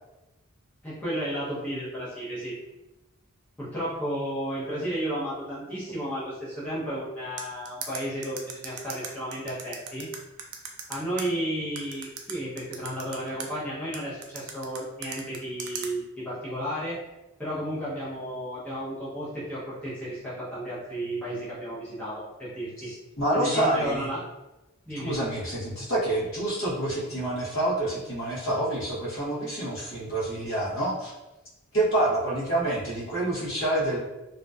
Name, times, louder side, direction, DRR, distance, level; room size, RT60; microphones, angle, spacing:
voice 1, 0.8-2.6 3.6-10.1 10.9-17.0 17.4-22.9 23.3-24.2 24.9-25.2, right 1 dB, 5° left, -11 dB, 0.6 m, -33 dB
sound 1, 7.4-11.2 11.8-13.5 13.9-15.9, right 6 dB, 85° right, 0.4 m, -37 dB
voice 2, 22.8-24.1 25.0-31.1 31.7-34.0, right 1 dB, 60° left, -7 dB, 0.8 m, -27 dB
2.6 x 2.1 x 2.2 m, 1.0 s
head